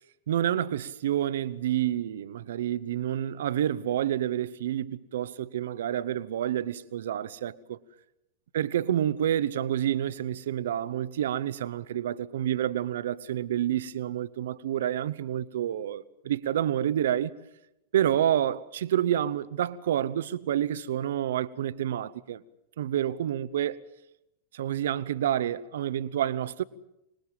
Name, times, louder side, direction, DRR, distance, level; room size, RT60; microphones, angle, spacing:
voice 1, 0.3-7.8 8.5-17.3 17.9-22.4 22.8-23.8 24.5-26.6, right 11 dB, 60° right, 0.9 m, -28 dB
26.0 x 20.5 x 7.6 m
figure-of-eight pair, 90°, 0 cm